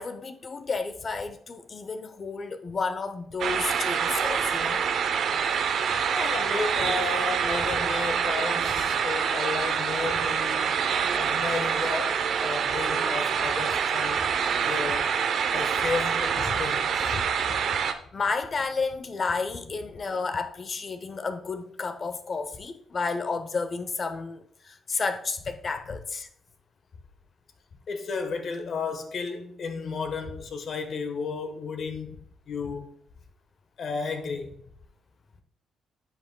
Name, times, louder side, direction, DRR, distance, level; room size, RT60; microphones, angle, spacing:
voice 1, 0.0-4.8 18.1-26.3, left 4 dB, 40° left, 0.7 m, -31 dB
sound 1, 3.4-17.9, right 7 dB, 65° right, 0.6 m, -26 dB
voice 2, 6.1-10.8 11.2-14.3 14.6-15.1 15.5-17.6 27.9-32.2 32.5-32.9 33.8-34.6, left 4 dB, 55° left, 1.1 m, -33 dB
10.0 x 5.8 x 2.2 m
cardioid pair, 90°, 0 cm